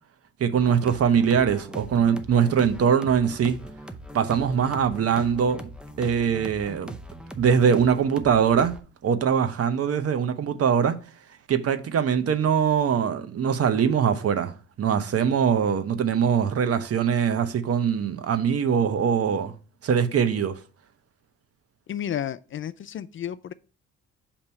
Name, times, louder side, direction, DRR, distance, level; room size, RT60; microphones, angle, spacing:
voice 1, 0.4-3.6 4.1-5.6 6.0-6.9 7.4-8.7 9.0-10.9 11.5-19.5 19.8-20.6, right 7 dB, 50° right, 0.8 m, -22 dB
sound 1, 0.6-8.8, right 1 dB, 5° right, 0.6 m, -41 dB
voice 2, 21.9-23.5, left 10 dB, 45° left, 0.4 m, -32 dB
7.0 x 2.9 x 5.5 m
cardioid pair, 90°, 30 cm